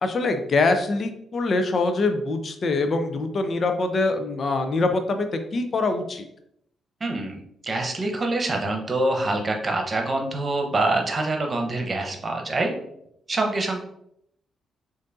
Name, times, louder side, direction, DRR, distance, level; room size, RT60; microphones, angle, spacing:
voice 1, 0.0-6.2, left 3 dB, 50° left, 7 dB, 0.5 m, -24 dB
voice 2, 7.0-12.7 13.3-13.8, right 2 dB, 40° right, 3 dB, 1.0 m, -25 dB
6.5 x 2.6 x 2.6 m, 0.74 s
hypercardioid pair, 40°, 0 cm